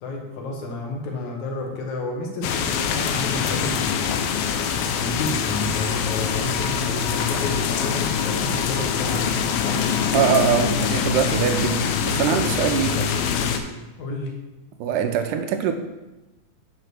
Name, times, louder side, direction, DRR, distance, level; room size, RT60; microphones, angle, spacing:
voice 1, 0.0-4.4 5.0-9.8 14.0-14.3, left 2 dB, 60° left, 1 dB, 2.3 m, -31 dB
sound 1, 2.4-13.6, left 7 dB, 85° left, 2.5 m, -24 dB
voice 2, 10.1-13.1 14.8-15.7, right 8 dB, 85° right, 6 dB, 1.8 m, -23 dB
6.3 x 5.8 x 6.2 m, 1.0 s
omnidirectional pair, 4.2 m